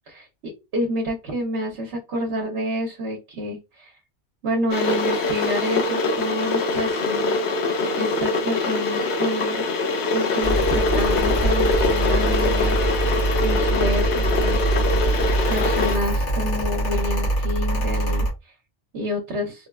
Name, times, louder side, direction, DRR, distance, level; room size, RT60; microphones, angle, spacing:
voice 1, 0.1-3.9 4.4-7.4 8.0-9.7 10.1-12.8 13.4-14.6 15.5-18.5 18.9-19.5, equal, 70° right, 2 dB, 1.0 m, -28 dB
Water / Boiling, 4.7-16.0, left 3 dB, 70° left, 0.9 m, -23 dB
Mechanical fan, 10.4-18.3, right 2 dB, 90° left, 1.5 m, -23 dB
4.1 x 2.2 x 2.2 m, 0.25 s
omnidirectional pair, 1.2 m